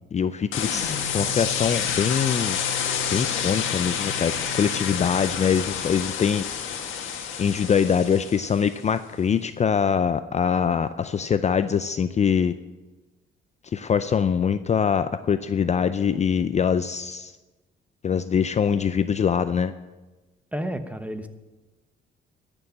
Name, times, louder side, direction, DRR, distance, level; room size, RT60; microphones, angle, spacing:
voice 1, 0.1-2.6 3.1-6.4 7.4-12.5 13.6-17.3 18.0-19.7, left 7 dB, 35° left, 12 dB, 0.5 m, -23 dB
sound 1, 0.5-8.7, left 7 dB, 80° left, 1.6 m, -28 dB
voice 2, 20.5-21.3, equal, 5° right, 8 dB, 1.1 m, -31 dB
13.0 x 6.9 x 8.6 m, 1.2 s
cardioid pair, 90°, 20 cm